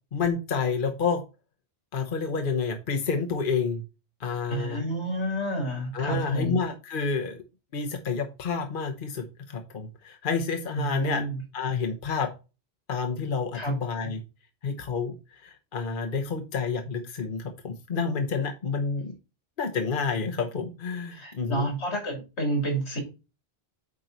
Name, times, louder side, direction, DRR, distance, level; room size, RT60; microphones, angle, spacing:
voice 1, 0.1-1.2 1.9-3.8 4.2-4.9 5.9-7.4 7.7-11.3 11.5-12.3 12.9-14.2 14.6-15.1 15.4-19.1 19.6-21.7, left 5 dB, 50° left, 4 dB, 1.1 m, -29 dB
voice 2, 4.5-6.6 10.8-11.4 13.5-13.7 21.1-23.0, right 2 dB, 80° left, 2 dB, 3.4 m, -30 dB
8.8 x 4.6 x 3.9 m, 0.29 s
omnidirectional pair, 1.1 m